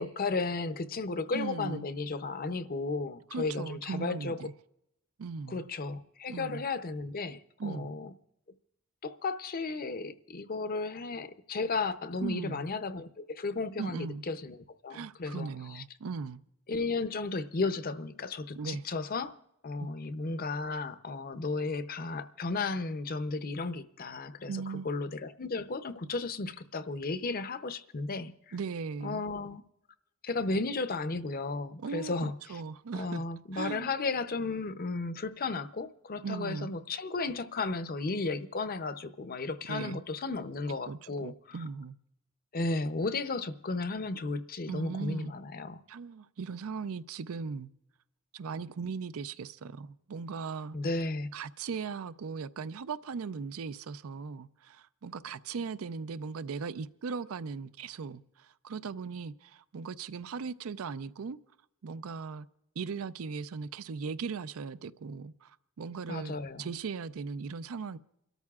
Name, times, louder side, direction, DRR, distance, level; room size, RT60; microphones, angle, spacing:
voice 1, 0.0-4.4 5.5-8.1 9.0-15.8 16.7-19.3 19.6-28.3 29.0-29.6 30.2-32.6 32.9-41.6 42.5-45.8 50.7-51.3 66.1-66.7, left 3 dB, 45° left, 0.6 m, -34 dB
voice 2, 1.3-1.9 3.3-4.5 5.2-5.7 6.3-6.6 7.6-7.9 12.2-12.6 13.8-14.2 14.9-16.4 18.5-18.8 24.5-24.9 28.5-29.2 31.8-33.2 33.5-33.9 36.2-36.7 39.7-40.0 40.9-42.0 44.7-45.3 45.9-47.7 48.3-50.8 51.3-61.4 61.8-62.5 62.8-68.0, right 5 dB, 75° right, 0.5 m, -38 dB
29.0 x 13.0 x 2.4 m
head